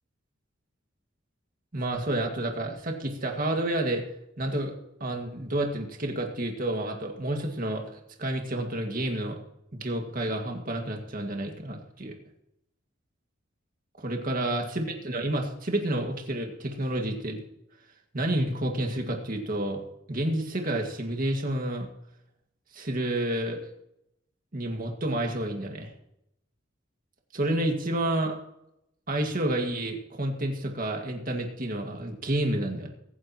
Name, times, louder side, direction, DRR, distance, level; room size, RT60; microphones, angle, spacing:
voice 1, 1.7-4.0 4.4-4.7 5.0-7.8 8.2-9.4 9.7-12.1 14.0-17.4 18.1-19.8 20.1-21.9 22.7-23.6 24.5-25.9 27.3-28.4 29.1-32.9, right 1 dB, 45° right, 2 dB, 2.1 m, -29 dB
23.5 x 9.5 x 3.1 m, 0.81 s
head